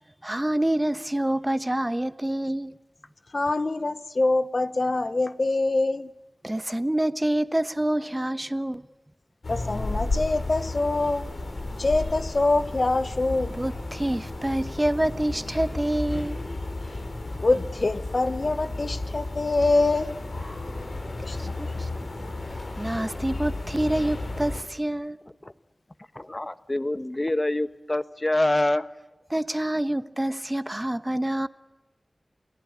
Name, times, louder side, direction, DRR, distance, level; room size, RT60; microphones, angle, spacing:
voice 1, 0.2-2.7 6.4-8.9 13.5-16.4 21.4-21.9 22.8-25.2 29.3-31.5, right 1 dB, 20° right, 1.2 m, -27 dB
voice 2, 3.3-6.1 9.5-11.3 11.8-13.5 17.4-20.1 21.2-21.4, left 2 dB, 60° left, 1.1 m, -24 dB
sound 1, 9.4-24.6, left 2 dB, 75° left, 5.0 m, -33 dB
voice 3, 26.1-28.9, left 1 dB, 30° left, 1.2 m, -25 dB
29.5 x 19.0 x 9.8 m
wide cardioid pair, 55°, 0 cm